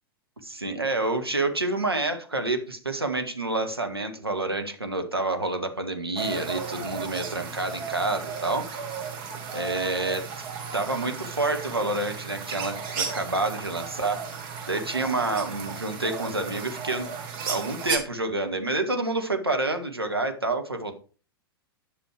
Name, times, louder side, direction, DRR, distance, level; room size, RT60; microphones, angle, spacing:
voice 1, 0.4-8.7 9.5-10.5 10.7-14.2 14.7-17.1 17.4-21.0, right 2 dB, 85° right, 5 dB, 1.7 m, -28 dB
sound 1, 6.2-18.0, right 6 dB, 35° right, 2.3 m, -34 dB
10.5 x 6.8 x 4.7 m, 0.38 s
figure-of-eight pair, 95°, 12 cm